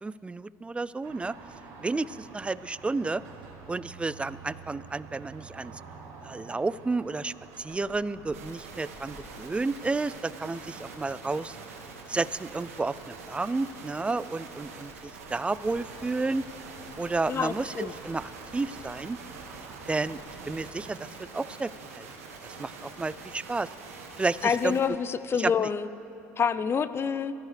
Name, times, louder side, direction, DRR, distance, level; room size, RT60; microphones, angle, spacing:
voice 1, 0.0-1.3 1.8-3.2 3.7-5.8 6.2-11.6 12.1-14.9 15.3-16.4 17.0-19.2 19.9-20.2 20.5-22.1 22.4-23.7 24.2-24.8 25.4-25.7, right 3 dB, 15° right, 18 dB, 0.4 m, -31 dB
sound 1, 1.0-21.0, right 4 dB, 70° right, 3.8 m, -49 dB
sound 2, 8.3-24.9, right 4 dB, 85° right, 1.8 m, -45 dB
voice 2, 17.3-17.9 24.4-25.9 26.4-27.3, left 6 dB, 35° left, 14 dB, 0.6 m, -27 dB
22.0 x 14.0 x 3.3 m, 2.9 s
hypercardioid pair, 70°, 8 cm